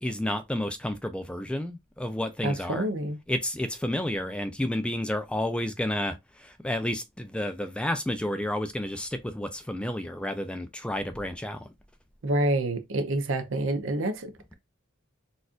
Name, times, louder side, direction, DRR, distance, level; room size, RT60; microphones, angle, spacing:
voice 1, 0.0-2.9 3.3-11.7, left 1 dB, 5° left, 0.3 m, -31 dB
voice 2, 2.4-3.2 12.2-14.5, right 1 dB, 65° right, 0.7 m, -28 dB
4.1 x 2.4 x 2.4 m
head